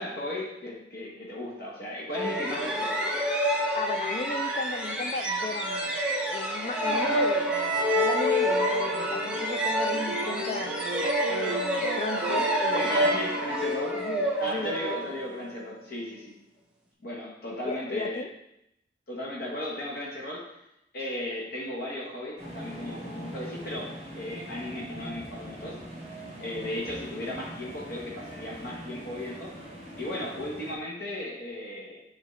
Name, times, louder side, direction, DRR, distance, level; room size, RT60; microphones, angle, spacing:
voice 1, 0.0-3.0 6.9-7.2 11.0-11.4 12.3-12.4 12.7-14.1 14.4-16.4 17.0-18.3 19.1-20.5 20.9-25.8 26.4-29.5 30.0-32.0, left 1 dB, 60° left, -3 dB, 1.1 m, -36 dB
sound 1, 2.1-15.6, equal, 5° right, 0.8 m, -28 dB
voice 2, 3.7-7.5 8.0-10.7 11.3-13.2 13.9-15.1 17.6-18.3, left 3 dB, 40° left, 9 dB, 0.4 m, -35 dB
sound 2, 6.4-13.7, right 3 dB, 60° right, 0.4 m, -34 dB
sound 3, 22.4-30.7, equal, 40° right, 1.5 m, -42 dB
7.9 x 4.0 x 3.1 m, 0.82 s
head